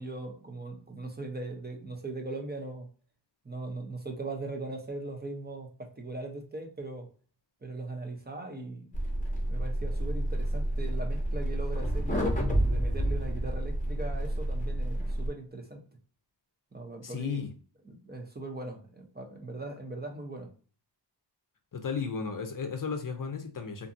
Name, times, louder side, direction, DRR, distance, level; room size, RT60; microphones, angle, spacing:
voice 1, 0.0-2.9 3.4-7.1 7.6-8.9 9.5-15.8 16.7-17.4 17.8-20.5, right 2 dB, 25° right, 2 dB, 0.6 m, -39 dB
sound 1, 8.9-15.3, right 1 dB, 20° left, 0.8 m, -29 dB
voice 2, 17.0-17.5 21.7-23.9, left 5 dB, 50° left, 6 dB, 0.6 m, -34 dB
2.6 x 2.5 x 2.5 m, 0.40 s
wide cardioid pair, 85°, 43 cm